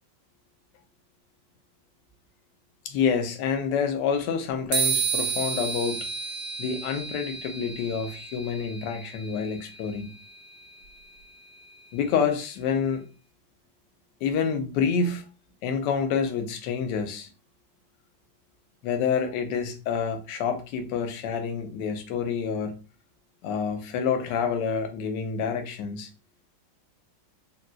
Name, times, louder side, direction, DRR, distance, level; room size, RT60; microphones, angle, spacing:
voice 1, 2.8-6.1 6.6-10.1 11.9-13.0 14.2-15.2 15.6-17.3 18.8-22.7 23.4-26.1, left 6 dB, 75° left, 1.2 m, -28 dB
sound 1, 4.7-12.4, right 6 dB, 65° right, 1.3 m, -33 dB
3.8 x 2.3 x 2.3 m
omnidirectional pair, 2.0 m